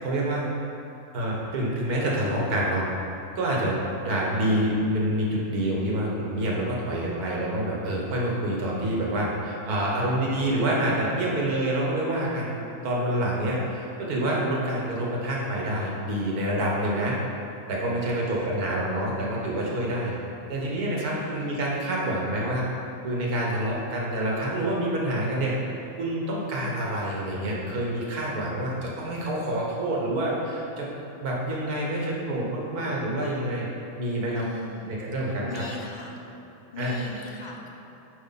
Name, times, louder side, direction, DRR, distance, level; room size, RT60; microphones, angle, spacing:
voice 1, 0.0-0.5 1.1-2.9 3.4-12.6 12.8-17.2 17.7-20.1 20.5-22.7 23.0-25.5 26.0-30.9 31.2-33.7 34.0-34.4 34.9-35.6 36.8-36.9, right 1 dB, 85° right, -3 dB, 1.8 m, -27 dB
voice 2, 18.1-18.5 21.0-21.5 34.3-34.9 35.2-36.2 36.7-37.7, left 3 dB, 45° left, -1 dB, 0.6 m, -40 dB
10.0 x 4.8 x 4.2 m, 2.8 s
omnidirectional pair, 1.6 m